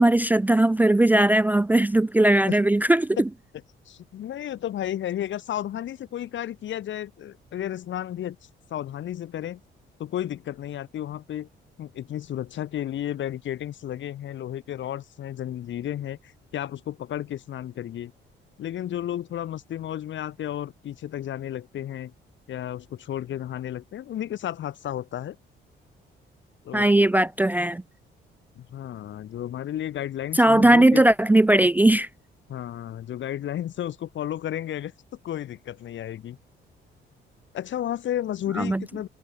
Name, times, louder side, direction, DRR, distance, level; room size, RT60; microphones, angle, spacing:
voice 1, 0.0-3.3 26.7-27.8 30.3-32.1 38.6-38.8, right 1 dB, 10° right, 0.4 m, -19 dB
voice 2, 3.8-8.4 8.7-9.6 10.0-11.5 11.8-18.1 18.6-22.1 22.5-25.4 26.6-26.9 28.5-31.0 32.5-34.9 35.2-36.4 37.5-39.1, left 11 dB, 70° left, 3.4 m, -33 dB
cardioid pair, 90°, 20 cm